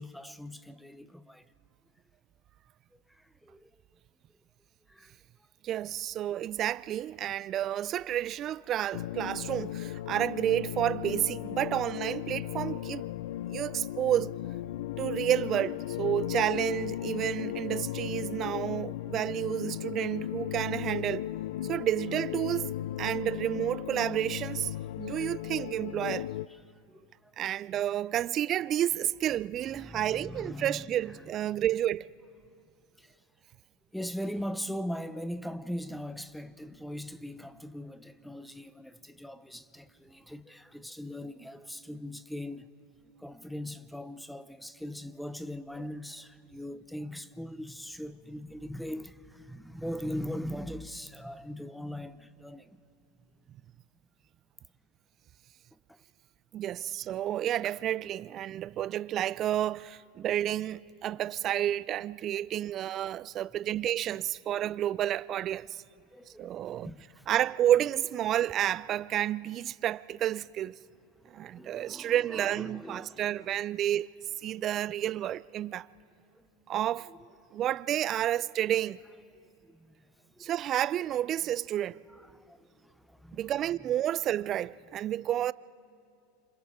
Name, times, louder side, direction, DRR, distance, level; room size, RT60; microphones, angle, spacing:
voice 1, 0.0-1.5 2.9-3.7 4.9-5.2 25.1-25.3 25.6-25.7 26.5-26.6 26.9-27.3 29.3-31.6 33.0-33.2 33.9-42.7 43.2-52.8 55.9-56.0 66.1-67.3 71.3-73.7 76.3-76.4 77.1-77.6 79.6-80.0 80.4-80.5 82.1-83.8, equal, ahead, 0.7 m, -41 dB
voice 2, 5.6-13.0 13.5-14.3 15.0-21.3 21.6-22.7 23.0-24.7 25.0-26.3 27.4-32.1 56.5-65.8 66.4-66.9 67.3-70.8 71.3-74.1 74.4-75.9 76.7-77.1 77.5-79.0 80.4-82.0 83.3-85.5, right 12 dB, 40° right, 0.4 m, -30 dB
sound 1, 8.9-26.5, left 14 dB, 75° left, 0.4 m, -36 dB
27.5 x 27.0 x 3.6 m
hypercardioid pair, 105°, 0 cm